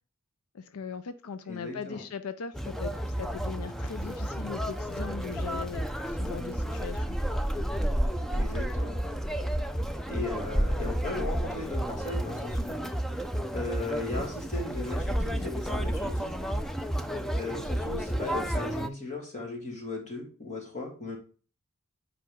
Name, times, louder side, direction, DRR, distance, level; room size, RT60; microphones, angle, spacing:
voice 1, 0.5-7.2, left 6 dB, 90° left, 0.5 m, -39 dB
voice 2, 1.5-2.0 8.3-9.0 10.1-12.9 13.5-16.4 17.4-21.2, left 2 dB, 35° left, 2.4 m, -37 dB
Conversation, 2.5-18.9, equal, ahead, 0.4 m, -31 dB
8.4 x 5.1 x 3.6 m
head